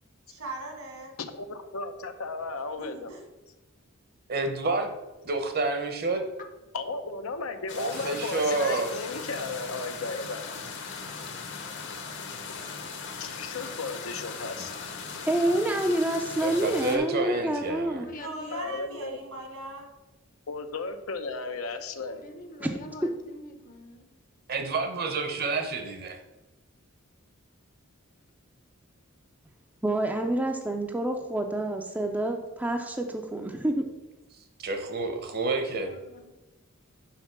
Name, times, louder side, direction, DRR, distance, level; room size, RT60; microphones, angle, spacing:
voice 1, 0.3-1.1 2.8-3.2 18.2-19.9, right 2 dB, 75° right, 2 dB, 2.0 m, -39 dB
voice 2, 1.3-3.1 6.7-10.4 13.2-14.8 18.5-19.2 20.5-22.2, left 3 dB, 75° left, 8 dB, 0.7 m, -35 dB
voice 3, 4.3-5.0 5.2-6.2 7.8-8.9 16.4-18.1 24.5-26.2 34.6-35.9, right 3 dB, 50° right, 6 dB, 1.0 m, -29 dB
sound 1, 7.7-17.0, left 5 dB, 60° left, 1.1 m, -38 dB
voice 4, 15.3-18.1 22.6-22.7 29.8-33.8, right 1 dB, 10° right, 3 dB, 0.5 m, -28 dB
voice 5, 17.5-18.7 22.1-24.1 35.8-36.3, left 2 dB, 40° left, 6 dB, 0.8 m, -46 dB
5.7 x 5.3 x 6.0 m, 1.1 s
head